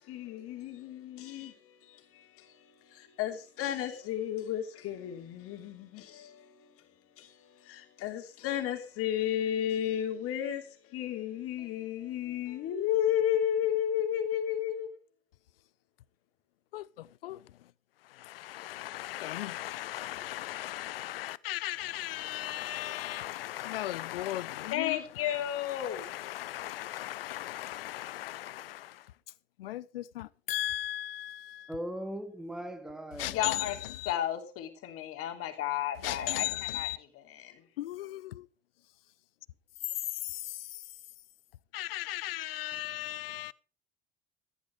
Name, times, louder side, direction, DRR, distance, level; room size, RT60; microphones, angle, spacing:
voice 1, 0.1-6.7 7.2-15.0 24.7-26.0 33.3-33.8 34.0-36.9 37.4-37.6, left 10 dB, 50° left, 3.1 m, -33 dB
voice 2, 16.7-17.7 18.0-29.1 29.6-31.7 33.2-34.1 36.0-37.0 37.8-38.5 40.2-40.9 41.7-43.5, left 14 dB, 70° left, 0.7 m, -37 dB
voice 3, 31.7-33.4, equal, ahead, 2.0 m, -39 dB
14.5 x 11.0 x 4.9 m
figure-of-eight pair, 70°, 30 cm